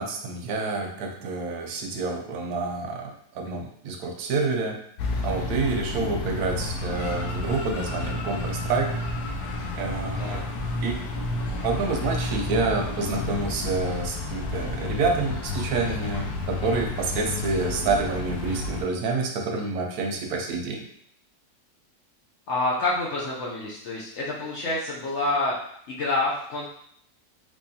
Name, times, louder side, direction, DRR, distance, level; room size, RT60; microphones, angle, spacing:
voice 1, 0.0-4.8 5.2-8.9 9.7-10.4 10.8-11.0 11.6-20.8, right 3 dB, 70° right, 2 dB, 1.0 m, -28 dB
sound 1, 5.0-18.8, left 2 dB, 75° left, 1.0 m, -31 dB
voice 2, 5.6-6.0 10.2-10.4 22.5-25.6 25.9-26.7, left 2 dB, 90° left, -4 dB, 0.6 m, -28 dB
3.5 x 3.1 x 2.7 m, 0.69 s
omnidirectional pair, 1.9 m